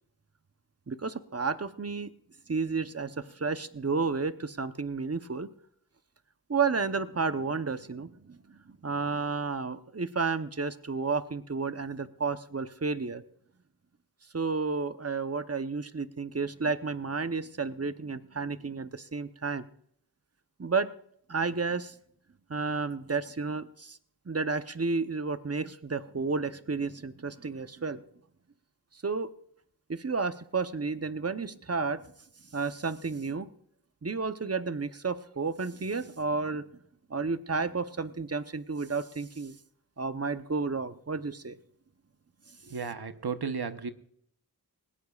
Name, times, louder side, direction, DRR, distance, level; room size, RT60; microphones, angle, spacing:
voice 1, 0.9-2.1 2.5-5.5 6.5-13.2 14.3-19.6 20.6-20.9 21.3-21.9 22.5-24.0 24.3-28.0 29.0-29.3 29.9-32.0 32.5-33.5 34.0-36.7 37.1-39.5 40.0-41.6, right 4 dB, 40° right, 11 dB, 0.9 m, -31 dB
voice 2, 42.7-43.9, right 5 dB, 75° right, 10 dB, 1.1 m, -34 dB
20.0 x 17.0 x 2.4 m, 0.66 s
wide cardioid pair, 40°, 39 cm